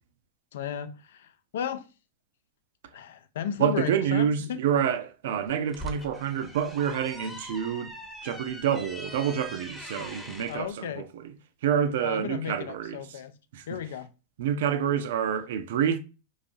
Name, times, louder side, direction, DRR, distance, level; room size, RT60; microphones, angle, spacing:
voice 1, 0.5-1.9 2.9-4.6 10.0-10.1 10.4-11.1 12.0-13.3 13.7-14.1, left 9 dB, 60° left, 0.4 m, -35 dB
voice 2, 3.6-7.9 8.2-11.3 11.6-13.2 13.5-13.8 14.4-16.0, right 8 dB, 55° right, 0.4 m, -28 dB
sound 1, 5.5-10.6, left 1 dB, 5° left, 0.8 m, -42 dB
3.9 x 2.6 x 2.5 m
figure-of-eight pair, 90°, 0 cm